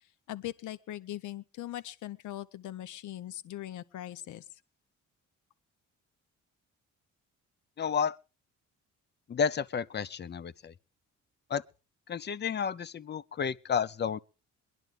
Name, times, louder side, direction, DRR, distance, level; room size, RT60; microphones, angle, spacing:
voice 1, 0.3-4.4, left 13 dB, 75° left, 0.8 m, -40 dB
voice 2, 7.8-8.2 9.3-10.7 11.5-11.6 12.1-14.2, left 6 dB, 35° left, 0.6 m, -31 dB
22.0 x 11.0 x 3.3 m
cardioid pair, 90°, 30 cm